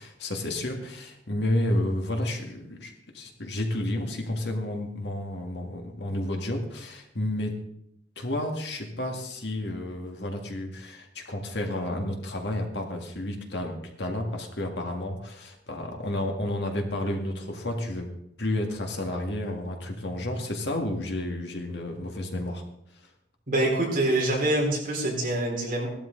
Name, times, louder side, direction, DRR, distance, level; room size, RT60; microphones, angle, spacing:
voice 1, 0.0-7.6 8.2-18.1 18.4-22.6, left 1 dB, 65° left, 3 dB, 2.0 m, -31 dB
voice 2, 23.5-25.9, right 1 dB, 45° right, -2 dB, 4.3 m, -25 dB
17.0 x 12.5 x 3.9 m, 0.77 s
head